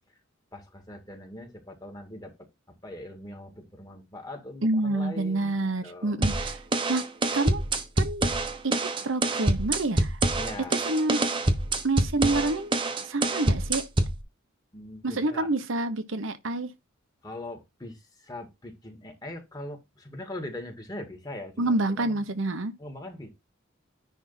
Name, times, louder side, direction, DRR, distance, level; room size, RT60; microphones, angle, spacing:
voice 1, 0.5-6.4 10.4-10.8 14.7-15.5 17.2-22.2 22.8-23.3, left 1 dB, 20° left, 2.0 m, -41 dB
voice 2, 4.6-6.6 6.9-7.0 7.3-7.6 8.0-8.3 8.6-10.2 10.7-11.3 11.8-12.7 13.1-13.8 15.0-16.7 21.6-22.7, right 2 dB, 70° right, 1.0 m, -28 dB
sound 1, 6.2-14.2, right 2 dB, 25° right, 1.0 m, -26 dB
10.0 x 3.5 x 5.6 m
head